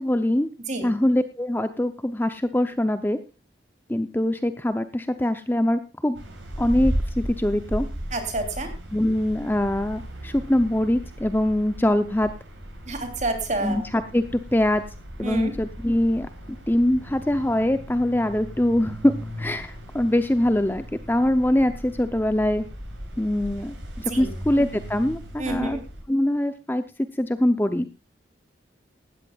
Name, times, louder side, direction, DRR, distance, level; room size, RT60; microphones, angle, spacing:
voice 1, 0.0-0.5 0.8-3.2 3.9-6.2 6.6-7.9 8.9-12.3 13.6-14.8 15.2-16.3 16.7-19.1 19.4-22.6 23.2-25.8 26.1-26.8 27.2-27.9, left 1 dB, 10° left, 9 dB, 0.6 m, -23 dB
sound 1, 6.1-26.0, equal, 90° right, 6.9 m, -36 dB
voice 2, 8.1-8.7 12.9-13.8 15.2-15.5 24.1-24.3 25.4-25.8, right 2 dB, 40° right, 6 dB, 3.1 m, -28 dB
18.0 x 13.0 x 2.4 m, 0.29 s
head